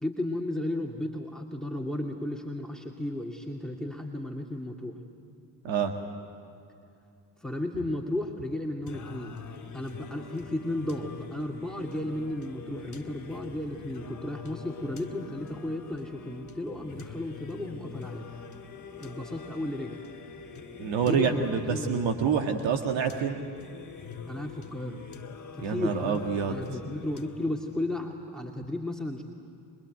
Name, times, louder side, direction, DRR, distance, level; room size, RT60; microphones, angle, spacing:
voice 1, 0.0-5.0 7.4-9.4 9.7-18.2 19.0-20.0 21.0-22.0 24.3-25.0 25.5-29.2, left 1 dB, ahead, 0 dB, 2.4 m, -34 dB
Singing, 8.9-27.9, left 5 dB, 40° left, 2.3 m, -45 dB
voice 2, 20.8-23.4 25.6-26.6, right 6 dB, 70° right, 5 dB, 1.8 m, -27 dB
24.5 x 20.5 x 9.2 m, 2.7 s
hypercardioid pair, 50°, 46 cm